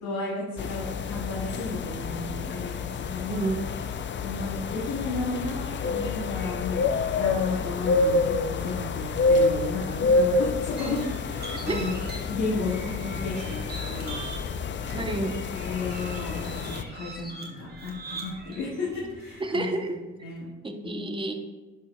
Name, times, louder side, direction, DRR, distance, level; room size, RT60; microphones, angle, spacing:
voice 1, 0.0-3.5 4.2-12.0 12.3-14.2 15.5-19.9 20.2-20.5 20.8-21.0, left 3 dB, 75° left, -6 dB, 1.7 m, -33 dB
sound 1, 0.6-16.8, left 3 dB, 40° left, 0.5 m, -28 dB
sound 2, 10.8-19.7, right 2 dB, 30° right, 1.6 m, -41 dB
voice 2, 14.9-15.4 19.4-19.9 20.6-21.3, right 2 dB, 15° right, 5 dB, 0.8 m, -29 dB
11.5 x 4.4 x 2.3 m, 1.2 s
cardioid pair, 90°, 30 cm